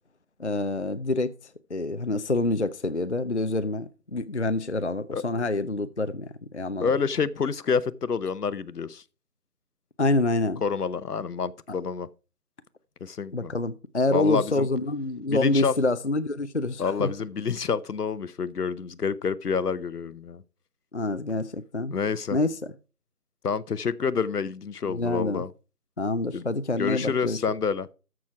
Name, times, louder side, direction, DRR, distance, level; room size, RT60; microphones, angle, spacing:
voice 1, 0.4-1.3 1.7-6.9 10.0-10.6 13.3-17.1 20.9-21.9 22.3-22.7 24.8-25.4 26.0-27.4, left 2 dB, 50° left, 0.5 m, -27 dB
voice 2, 6.8-9.0 10.6-12.1 13.0-13.5 14.1-14.7 15.3-15.7 16.8-20.4 21.9-22.4 23.4-25.5 26.3-26.4 26.8-27.9, left 6 dB, 75° left, 0.9 m, -28 dB
13.5 x 6.2 x 4.6 m
figure-of-eight pair, 175°, 47 cm